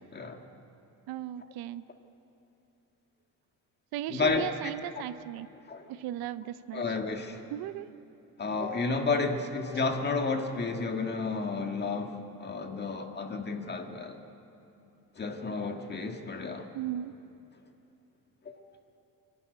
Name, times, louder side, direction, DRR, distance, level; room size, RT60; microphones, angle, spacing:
voice 1, 0.1-0.4 4.1-4.7 5.7-5.9 6.7-7.5 8.4-14.2 15.2-16.7 18.5-18.6, left 4 dB, 30° left, 4 dB, 1.7 m, -31 dB
voice 2, 1.1-1.8 3.9-5.5 5.9-6.8 7.5-7.9 16.7-17.2, right 13 dB, 75° right, 15 dB, 0.7 m, -36 dB
24.5 x 12.0 x 9.5 m, 2.8 s
cardioid pair, 120°, 37 cm